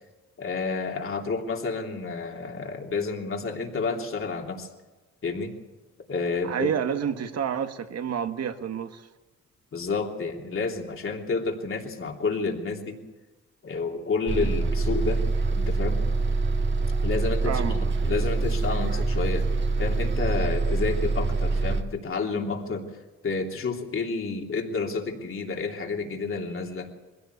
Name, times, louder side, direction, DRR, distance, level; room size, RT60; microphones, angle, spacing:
voice 1, 0.4-4.7 5.2-5.5 6.1-6.7 9.7-13.0 13.6-15.2 15.5-16.0 17.0-19.5 19.8-22.9 23.2-26.9, left 4 dB, 45° left, 2 dB, 3.2 m, -30 dB
voice 2, 6.4-9.0 17.4-17.8, right 8 dB, 55° right, 8 dB, 1.6 m, -29 dB
Bus, 14.3-21.8, right 3 dB, 40° right, 1.8 m, -25 dB
21.5 x 16.5 x 8.2 m, 1.2 s
cardioid pair, 90°, 30 cm